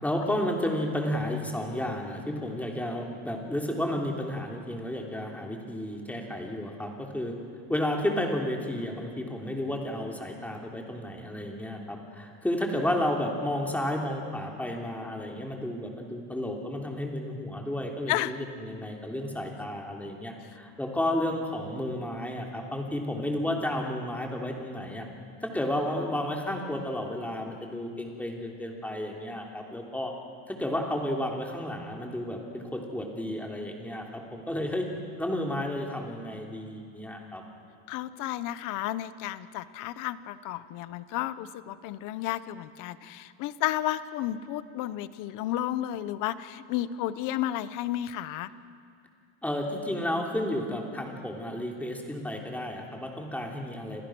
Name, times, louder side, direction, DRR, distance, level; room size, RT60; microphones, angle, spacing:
voice 1, 0.0-7.3 7.7-25.1 25.4-30.1 30.5-34.9 35.2-37.4 49.4-54.0, left 1 dB, 5° left, 1 dB, 3.2 m, -32 dB
voice 2, 18.1-18.4 37.9-48.5, left 13 dB, 55° left, 14 dB, 1.1 m, -32 dB
29.5 x 27.0 x 6.3 m, 2.3 s
cardioid pair, 155°, 37 cm